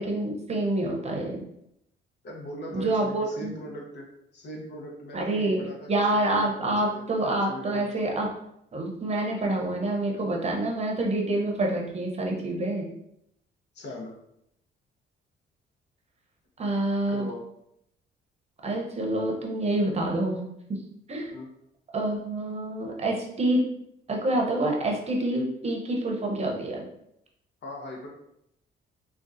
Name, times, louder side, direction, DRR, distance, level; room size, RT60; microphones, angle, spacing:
voice 1, 0.0-1.4 2.7-3.5 5.1-5.6 5.9-8.3 8.7-12.9 16.6-17.3 18.6-20.5 21.1-21.4 21.9-23.6 24.1-26.9, right 1 dB, 35° right, 0 dB, 0.7 m, -27 dB
voice 2, 2.2-4.1 4.3-7.9 13.7-14.2 17.1-17.4 21.3-21.5 27.6-28.1, left 1 dB, 60° left, -1 dB, 0.9 m, -40 dB
3.7 x 2.3 x 2.6 m, 0.77 s
cardioid pair, 90°, 20 cm